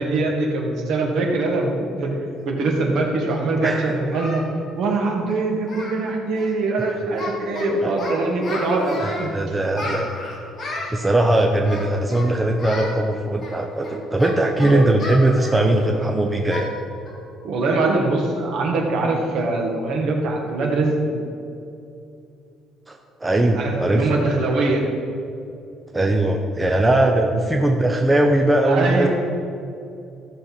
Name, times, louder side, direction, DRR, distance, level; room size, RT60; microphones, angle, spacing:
voice 1, 0.0-4.4 4.8-9.3 9.8-9.9 14.6-14.8 17.4-21.2 23.5-24.8 28.6-29.1, right 2 dB, 55° right, 1 dB, 1.7 m, -23 dB
Singing, 2.5-2.6 3.3-4.5 4.8-5.0 5.3-5.4 5.6-6.0 6.3-6.5 6.8-7.7 8.0-9.3 9.7-10.9 11.6-12.3 12.6-12.9 13.4-16.0 16.5-16.7 17.1-17.2 17.7-17.8 18.2-18.5, left 2 dB, 25° left, 2.1 m, -33 dB
voice 2, 3.6-3.9 7.8-7.9 9.0-10.2 10.7-16.7 22.9-24.2 25.9-29.1, right 1 dB, 10° right, 2 dB, 0.5 m, -20 dB
14.5 x 6.4 x 4.3 m, 2.6 s
cardioid pair, 170°, 0 cm